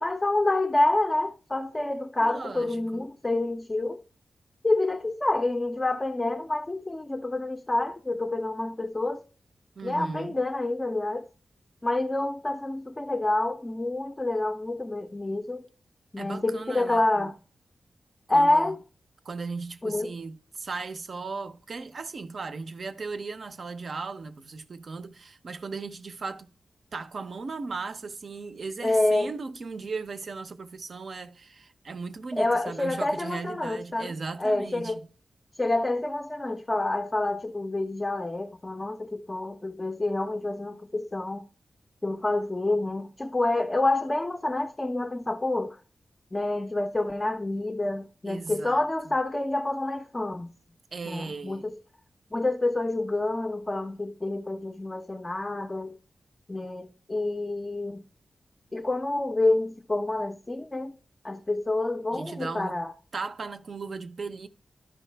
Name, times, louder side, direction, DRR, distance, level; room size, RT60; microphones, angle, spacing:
voice 1, 0.0-4.0 4.6-9.2 9.8-11.3 11.8-15.7 16.1-17.4 18.3-18.8 19.8-20.1 28.8-29.3 32.4-34.1 34.4-35.0 35.6-41.5 42.0-45.8 46.3-50.5 51.1-51.8 52.3-56.0 56.5-58.0 58.7-61.0 61.2-62.9, left 2 dB, 20° left, 0.4 m, -28 dB
voice 2, 2.2-3.0 9.8-10.4 16.2-17.3 18.3-18.8 19.2-26.5 26.9-35.0 48.3-49.1 50.9-51.6 62.1-62.8 63.1-64.5, right 4 dB, 55° right, 0.6 m, -37 dB
12.0 x 5.4 x 3.3 m
wide cardioid pair, 130°, 0 cm